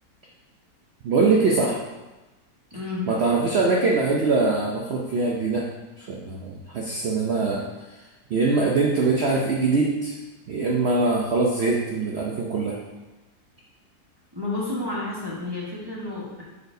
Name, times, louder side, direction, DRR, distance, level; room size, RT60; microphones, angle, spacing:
voice 1, 1.0-1.8 3.1-5.7 6.0-7.6 8.3-10.2 10.5-12.8, right 3 dB, 65° right, -1 dB, 0.6 m, -22 dB
voice 2, 2.7-3.1 14.3-16.4, left 2 dB, 15° right, -6 dB, 1.0 m, -30 dB
8.0 x 4.3 x 2.7 m, 1.1 s
omnidirectional pair, 1.8 m